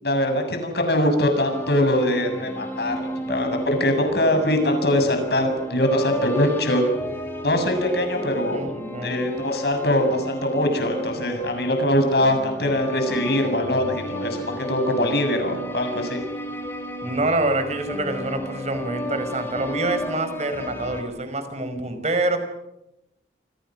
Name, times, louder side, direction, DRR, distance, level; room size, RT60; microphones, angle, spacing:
voice 1, 0.0-6.8 7.4-8.6 9.0-16.2, left 1 dB, 65° left, 5 dB, 7.5 m, -22 dB
sound 1, 1.4-21.0, equal, 15° left, 4.6 m, -33 dB
voice 2, 8.5-9.4 17.0-22.4, right 2 dB, 40° right, 9 dB, 5.3 m, -26 dB
29.5 x 25.5 x 6.3 m, 0.87 s
head